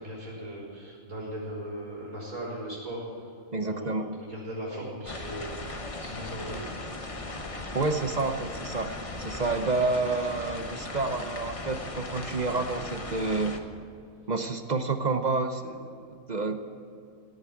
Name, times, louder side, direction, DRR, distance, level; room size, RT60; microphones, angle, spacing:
voice 1, 0.0-3.0 3.6-5.5 6.0-6.6, right 1 dB, 85° right, -3 dB, 5.6 m, -38 dB
voice 2, 3.5-4.2 7.7-8.9 9.2-13.6 14.3-16.6, right 3 dB, 40° right, 8 dB, 0.7 m, -29 dB
sound 1, 5.0-13.6, left 2 dB, 25° left, 1.0 m, -38 dB
16.0 x 9.5 x 8.6 m, 2.4 s
omnidirectional pair, 1.4 m